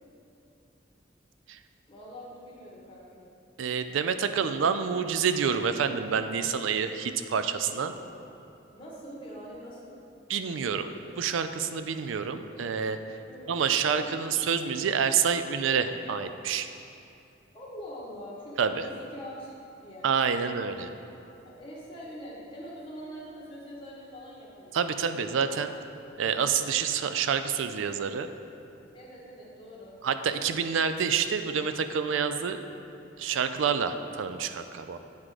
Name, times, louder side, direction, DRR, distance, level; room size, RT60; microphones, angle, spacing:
voice 1, 1.9-3.2 7.8-8.3 8.7-10.0 10.6-11.0 13.3-13.5 13.8-14.2 17.5-20.1 21.4-24.9 28.9-30.0, equal, 25° left, -6 dB, 1.4 m, -44 dB
voice 2, 3.6-7.9 10.3-10.9 11.2-13.0 13.5-16.7 18.6-18.9 20.0-20.9 24.7-25.7 26.2-28.3 30.0-32.6 33.2-35.0, right 6 dB, 90° right, 10 dB, 0.4 m, -28 dB
9.4 x 3.7 x 4.8 m, 2.7 s
head